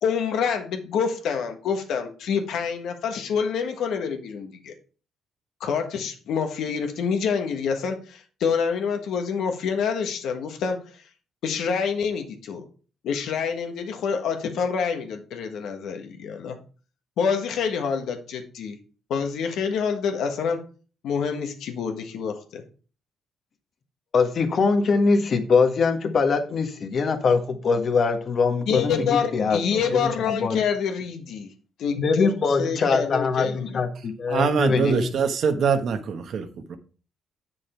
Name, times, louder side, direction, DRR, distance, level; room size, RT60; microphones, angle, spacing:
voice 1, 0.0-4.7 5.6-10.9 11.4-12.7 13.0-16.6 17.2-18.8 19.1-20.6 21.0-22.6 28.7-31.5 31.8-32.3 32.6-33.8, left 6 dB, 80° left, 5 dB, 1.5 m, -27 dB
voice 2, 24.1-29.6 29.9-30.6 32.0-35.1, left 4 dB, 50° left, 5 dB, 1.5 m, -23 dB
voice 3, 34.3-36.8, right 6 dB, 65° right, 8 dB, 1.2 m, -24 dB
8.0 x 6.3 x 4.5 m, 0.38 s
cardioid pair, 90°, 0 cm